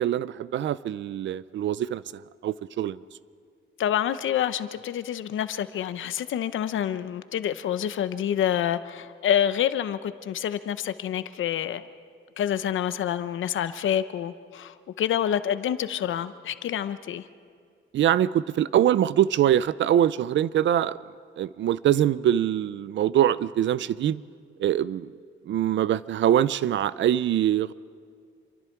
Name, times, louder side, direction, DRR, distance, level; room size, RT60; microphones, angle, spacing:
voice 1, 0.0-2.0 2.4-3.0 17.9-21.0 21.4-24.2 24.6-25.1 25.5-27.7, right 11 dB, 65° right, 18 dB, 0.5 m, -23 dB
voice 2, 3.8-11.9 12.4-17.3, left 10 dB, 70° left, 13 dB, 0.8 m, -27 dB
27.0 x 23.5 x 4.6 m, 2.2 s
cardioid pair, 150°, 21 cm